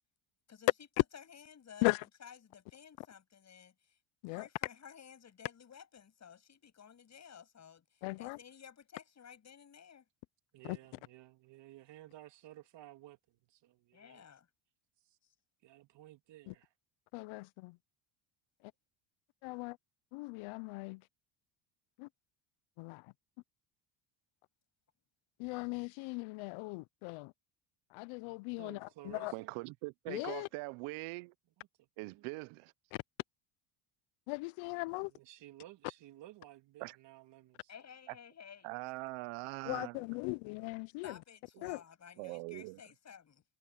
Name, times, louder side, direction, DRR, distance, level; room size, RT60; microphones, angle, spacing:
voice 1, 1.1-1.9 2.2-4.0 4.3-10.0 13.9-14.5 15.2-15.3 37.7-38.7 41.0-43.4, left 7 dB, 35° left, 7.7 m, -54 dB
voice 2, 8.0-8.4 10.6-10.8 16.5-16.6 17.1-17.8 19.4-19.8 20.1-21.0 22.0-22.1 22.8-23.1 25.4-27.3 27.9-29.3 30.1-30.5 34.3-35.1 39.6-41.2 41.6-41.8, left 26 dB, 80° left, 0.6 m, -38 dB
voice 3, 10.5-14.2 15.1-15.2 15.6-16.7 28.6-29.5 31.6-31.7 32.0-32.2 35.1-37.7, right 14 dB, 60° right, 3.1 m, -55 dB
voice 4, 29.3-31.3 32.0-32.7 36.8-37.0 38.6-40.0 41.6-41.7 42.2-42.8, right 25 dB, 85° right, 0.7 m, -42 dB
cardioid pair, 130°, 48 cm